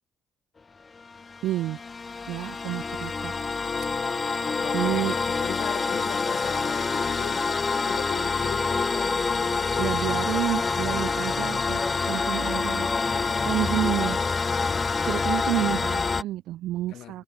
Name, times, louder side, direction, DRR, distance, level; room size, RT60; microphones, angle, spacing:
sound 1, 1.0-16.2, left 4 dB, 30° left, 0.6 m, -27 dB
voice 1, 1.4-1.8 2.3-3.3 4.7-5.1 9.8-11.8 12.1-12.9 13.4-14.2 15.0-17.2, right 14 dB, 85° right, 1.5 m, -29 dB
voice 2, 4.4-9.9 10.3-10.5 13.1-13.5 16.9-17.2, left 13 dB, 80° left, 4.3 m, -38 dB
cardioid pair, 90°, 0 cm